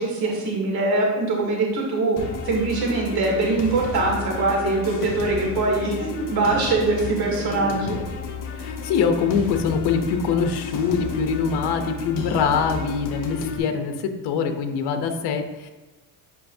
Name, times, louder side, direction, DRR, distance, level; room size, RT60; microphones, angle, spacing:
voice 1, 0.0-8.0, right 3 dB, 65° right, -2 dB, 2.1 m, -23 dB
sound 1, 2.2-13.6, left 5 dB, 50° left, 1.0 m, -32 dB
voice 2, 8.5-15.7, left 6 dB, 75° left, 6 dB, 0.8 m, -23 dB
8.2 x 5.3 x 2.7 m, 1.2 s
cardioid pair, 135°, 40 cm